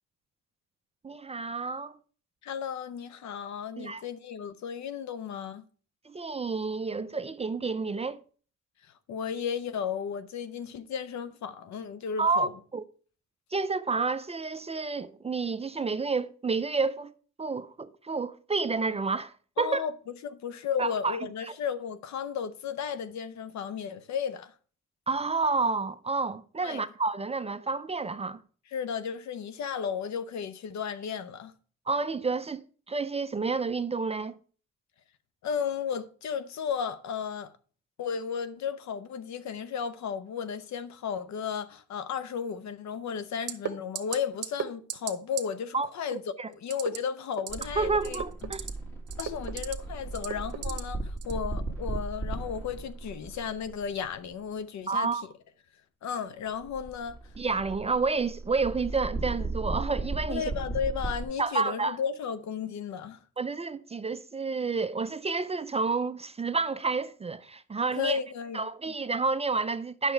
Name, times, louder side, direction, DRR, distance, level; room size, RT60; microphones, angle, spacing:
voice 1, 1.0-1.9 3.8-4.0 6.1-8.2 12.2-12.8 13.5-17.1 17.4-19.8 20.8-21.2 21.4-21.6 25.1-28.4 31.9-34.4 45.7-45.9 46.4-46.5 47.8-48.7 54.9-55.3 57.4-60.4 61.4-62.0 63.4-68.2 68.5-70.1, right 4 dB, 20° right, 0.4 m, -30 dB
voice 2, 2.4-5.6 9.1-12.5 19.6-19.9 20.2-24.5 26.6-26.8 28.7-31.5 35.4-37.5 38.0-46.2 46.5-48.5 49.2-55.1 56.0-57.2 60.3-63.2 67.9-68.7, left 7 dB, 65° left, 0.8 m, -34 dB
sound 1, 43.5-43.7 44.0-44.2 44.4-44.6 44.9-45.1 45.4-45.5 46.7-47.0 47.3-47.6 48.0-48.7 49.1-49.7 50.1-50.8 51.2-51.4, right 9 dB, 55° right, 1.0 m, -33 dB
sound 2, 47.5-54.1 56.5-61.2, right 2 dB, 10° left, 1.8 m, -36 dB
8.9 x 6.5 x 4.5 m
cardioid pair, 90°, 30 cm